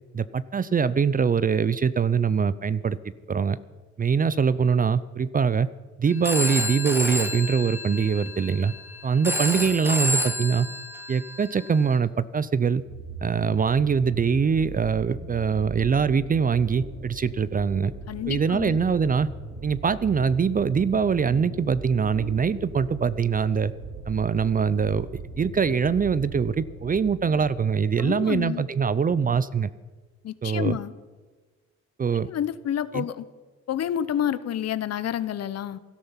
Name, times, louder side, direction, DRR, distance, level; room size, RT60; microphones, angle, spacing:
voice 1, 0.1-3.0 3.3-3.6 4.0-5.7 6.0-8.7 9.0-10.7 11.1-12.8 13.2-17.9 18.3-19.3 19.6-23.7 24.1-25.1 25.4-29.7 30.4-30.8 32.0-32.3 32.9-33.0, right 6 dB, 30° right, 17 dB, 0.5 m, -23 dB
Telephone, 6.1-12.0, left 1 dB, 10° right, 1.7 m, -30 dB
sound 1, 12.9-28.3 29.1-29.2, right 2 dB, 50° right, 4.9 m, -40 dB
voice 2, 18.1-18.8 28.0-28.6 30.2-30.9 32.3-33.2 33.7-35.8, left 10 dB, 55° left, 15 dB, 0.8 m, -29 dB
17.5 x 12.5 x 5.7 m, 1.3 s
cardioid pair, 90°, 30 cm